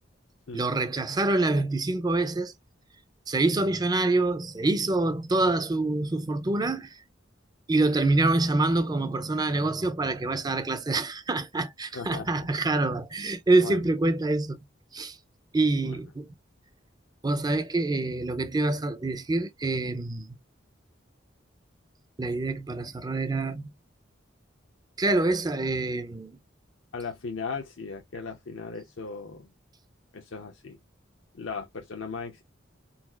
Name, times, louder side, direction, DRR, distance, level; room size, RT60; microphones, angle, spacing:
voice 1, 0.5-2.5 3.3-7.0 7.7-14.6 14.9-15.2 15.5-16.3 17.2-20.4 22.2-23.7 25.0-26.4, right 2 dB, 20° right, 0.5 m, -26 dB
voice 2, 11.9-12.5 13.6-13.8 15.8-16.0 26.9-29.5 30.1-30.8 31.3-32.4, left 4 dB, 75° left, 0.6 m, -37 dB
4.0 x 2.4 x 2.3 m
head